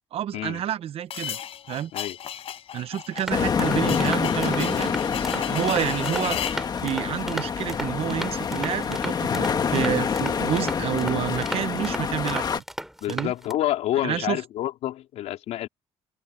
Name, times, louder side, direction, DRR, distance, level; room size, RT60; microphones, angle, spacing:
voice 1, 0.1-1.4 1.7-1.9 2.7-12.6 13.1-13.3 14.0-14.4, right 11 dB, 60° right, 0.9 m, -29 dB
sound 1, 1.1-6.7, left 10 dB, 60° left, 5.4 m, -35 dB
sound 2, 3.2-13.5, equal, 5° right, 3.2 m, -36 dB
sound 3, 3.3-12.6, left 6 dB, 35° left, 1.6 m, -27 dB
voice 2, 13.0-15.7, left 13 dB, 85° left, 4.1 m, -28 dB
open air
cardioid pair, 130°, 11 cm